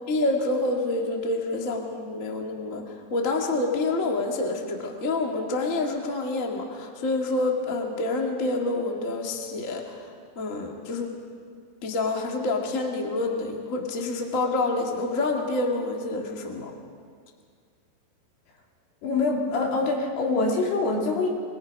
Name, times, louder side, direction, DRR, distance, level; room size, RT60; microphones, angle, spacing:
voice 1, 0.1-11.1 11.8-16.7, left 2 dB, 35° left, 1 dB, 1.2 m, -27 dB
voice 2, 19.0-21.3, left 3 dB, 65° left, -1 dB, 4.9 m, -24 dB
25.5 x 22.0 x 5.3 m, 2.1 s
omnidirectional pair, 5.0 m